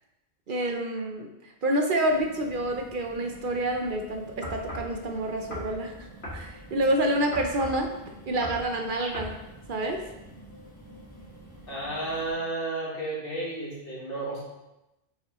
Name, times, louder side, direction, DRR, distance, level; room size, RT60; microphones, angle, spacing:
voice 1, 0.5-9.4 9.7-10.1, right 1 dB, 60° right, 3 dB, 0.8 m, -28 dB
sound 1, 2.1-12.3, equal, 15° right, 2.4 m, -48 dB
sound 2, 4.4-4.9 5.5-5.7 6.2-6.4 7.3-7.8 8.4-8.7 9.1-9.4, left 1 dB, 90° left, 2.1 m, -36 dB
voice 2, 11.7-14.4, right 2 dB, 65° left, -4 dB, 1.9 m, -32 dB
6.0 x 5.8 x 3.0 m, 0.94 s
omnidirectional pair, 1.0 m